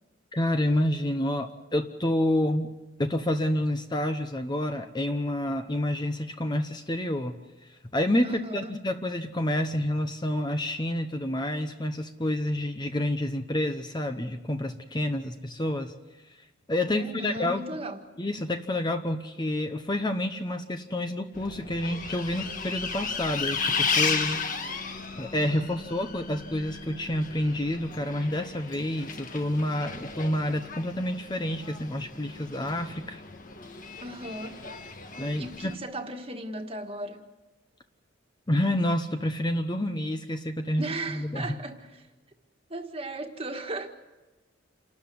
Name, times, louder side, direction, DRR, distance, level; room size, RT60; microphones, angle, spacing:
voice 1, 0.3-2.7 3.0-15.9 16.7-17.6 18.2-24.4 24.8-33.2 35.2-35.7 38.5-41.5, left 1 dB, 20° left, 7 dB, 0.9 m, -29 dB
voice 2, 8.2-8.8 16.9-18.0 34.0-34.6 35.4-37.2 40.8-42.1 42.7-43.9, right 2 dB, 30° right, 4 dB, 1.7 m, -36 dB
Bus, 21.3-35.7, left 5 dB, 40° left, 1.5 m, -34 dB
28.0 x 13.0 x 9.5 m, 1.1 s
head